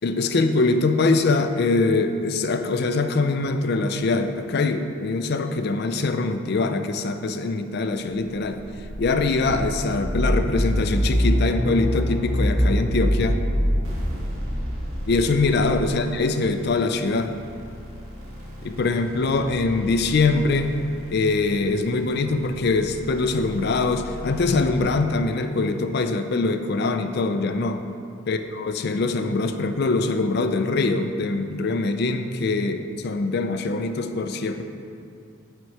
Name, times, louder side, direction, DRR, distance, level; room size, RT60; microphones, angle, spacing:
voice 1, 0.0-8.6 9.0-13.4 15.1-17.4 18.6-20.8 21.1-27.8 28.3-34.6, left 3 dB, 50° left, 8 dB, 0.4 m, -23 dB
sound 1, 8.4-16.2, equal, 15° right, 1.8 m, -24 dB
sound 2, 13.8-24.9, left 1 dB, 85° right, 1.5 m, -39 dB
8.9 x 4.5 x 4.7 m, 2.5 s
head